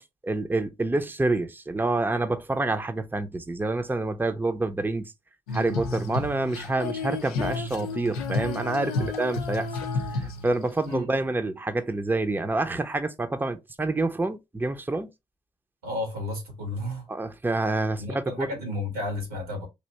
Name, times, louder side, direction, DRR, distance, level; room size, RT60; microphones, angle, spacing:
voice 1, 0.2-5.1 5.5-9.7 10.1-15.1 17.1-18.5, right 2 dB, 10° right, 0.7 m, -27 dB
Female singing, 5.5-10.9, left 3 dB, 85° left, 0.5 m, -31 dB
voice 2, 10.9-11.2 15.8-17.1 18.0-19.7, left 1 dB, 90° right, 1.8 m, -32 dB
3.3 x 2.7 x 4.0 m
hypercardioid pair, 40°, 19 cm